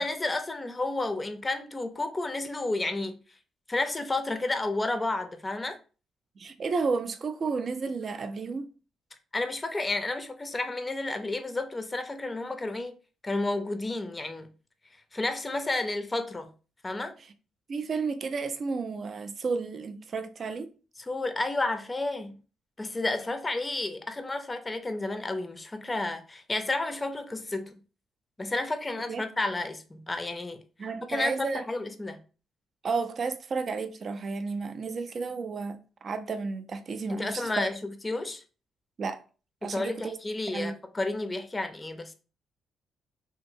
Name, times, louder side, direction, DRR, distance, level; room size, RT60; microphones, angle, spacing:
voice 1, 0.0-3.2 3.7-5.8 9.3-12.9 13.2-14.5 15.1-16.5 16.8-17.1 21.0-22.4 22.8-27.7 28.4-30.6 31.1-32.2 37.1-38.4 39.6-42.1, left 2 dB, 20° left, 0.5 m, -31 dB
voice 2, 6.4-8.7 17.7-20.7 29.1-29.2 30.8-31.6 32.8-37.7 39.0-39.2 39.6-40.2 40.5-40.7, right 4 dB, 45° right, 0.4 m, -32 dB
2.9 x 2.6 x 2.6 m
cardioid pair, 90°, 0 cm